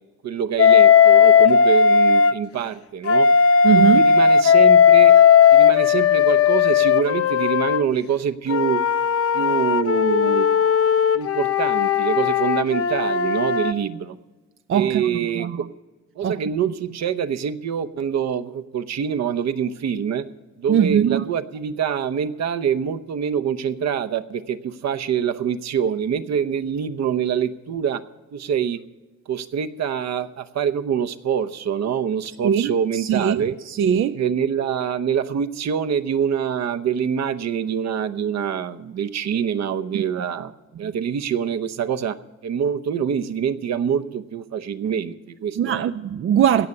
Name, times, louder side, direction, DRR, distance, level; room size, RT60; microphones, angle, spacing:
voice 1, 0.2-3.3 3.7-5.1 5.5-8.8 9.3-10.5 11.1-14.2 14.7-15.5 16.2-20.2 20.6-28.0 28.3-28.8 29.3-33.5 34.1-40.5 40.8-42.2 42.4-45.9, right 8 dB, 60° right, 0.9 m, -25 dB
Wind instrument woodwind instrument, 0.6-2.4 3.0-7.8 8.5-13.7, left 7 dB, 50° left, 0.7 m, -16 dB
voice 2, 3.6-4.1 14.7-15.1 15.4-15.6 16.2-16.4 20.7-21.3 32.4-33.4 33.7-34.2 39.9-40.0 45.6-46.7, right 8 dB, 45° right, 0.4 m, -20 dB
17.0 x 6.6 x 9.5 m
cardioid pair, 90°, 30 cm